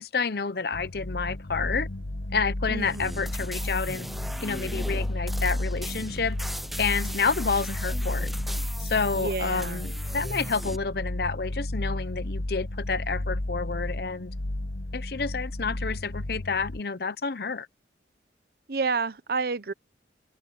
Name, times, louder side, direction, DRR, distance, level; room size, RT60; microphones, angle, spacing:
voice 1, 0.0-1.9 2.3-4.1 4.4-6.4 6.8-8.3 8.8-14.3 14.9-17.7, left 4 dB, 60° left, 0.8 m, -29 dB
sound 1, 0.7-16.8, left 1 dB, 75° left, 1.3 m, -32 dB
voice 2, 2.7-3.3 9.1-9.8 18.7-19.7, right 4 dB, 55° right, 0.8 m, -30 dB
sound 2, 2.8-10.8, equal, ahead, 0.5 m, -39 dB
open air
head